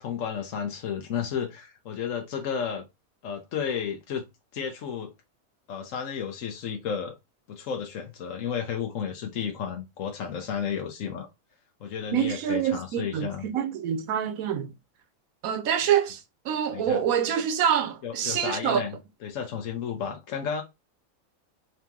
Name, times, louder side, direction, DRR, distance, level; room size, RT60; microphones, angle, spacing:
voice 1, 0.0-2.9 3.2-4.3 4.5-5.1 5.7-7.1 7.5-11.3 11.8-13.5 16.7-17.0 18.0-19.0 19.2-20.6, left 7 dB, 70° left, 1.1 m, -32 dB
voice 2, 12.1-14.7 15.4-18.8, right 9 dB, 85° right, 1.1 m, -26 dB
3.8 x 2.9 x 3.5 m
omnidirectional pair, 1.4 m